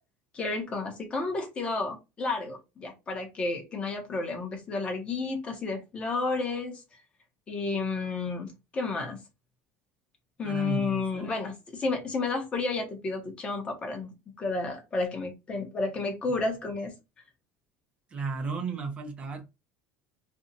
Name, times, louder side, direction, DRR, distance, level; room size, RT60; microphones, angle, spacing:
voice 1, 0.3-6.8 7.5-9.2 10.4-14.1 14.4-16.9, left 3 dB, 20° left, 1.0 m, -31 dB
voice 2, 10.4-11.4 18.1-19.4, right 4 dB, 20° right, 0.8 m, -34 dB
2.6 x 2.4 x 4.0 m
cardioid pair, 165°, 5 cm